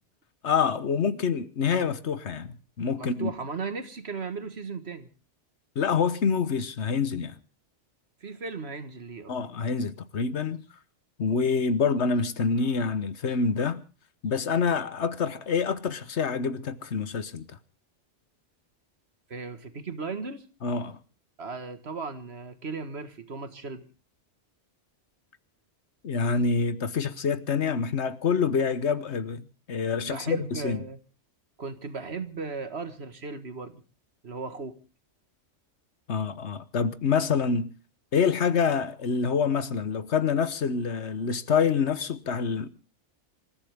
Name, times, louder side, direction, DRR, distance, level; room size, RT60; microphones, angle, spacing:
voice 1, 0.4-3.3 5.7-7.4 9.3-10.6 11.2-13.8 14.2-17.4 20.6-21.0 26.0-30.9 36.1-37.7 38.1-42.7, left 5 dB, 70° left, 1.3 m, -26 dB
voice 2, 3.0-5.1 8.2-9.4 19.3-20.5 21.4-23.8 30.0-31.0 31.6-33.8 34.2-34.8, right 4 dB, 60° right, 1.8 m, -36 dB
27.0 x 14.5 x 3.5 m
omnidirectional pair, 1.2 m